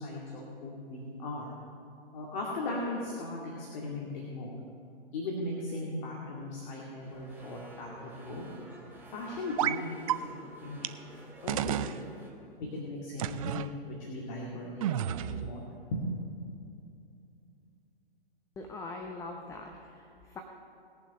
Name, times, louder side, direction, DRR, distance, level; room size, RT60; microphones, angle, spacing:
voice 1, 0.0-1.5 2.1-4.5 5.1-8.4 9.1-11.0 11.4-12.0 12.6-15.6 15.9-16.1, left 2 dB, 45° left, -3 dB, 2.3 m, -38 dB
sound 1, 7.0-12.3, right 1 dB, 5° right, 1.9 m, -51 dB
Game UI sounds, 9.6-9.8 10.1-10.2 10.8-10.9 11.5-12.0 13.2-13.7 14.8-15.5, right 11 dB, 35° right, 0.4 m, -31 dB
voice 2, 18.6-20.4, left 3 dB, 10° left, 3 dB, 0.7 m, -42 dB
19.5 x 7.2 x 5.4 m, 2.6 s
figure-of-eight pair, 120°, 30 cm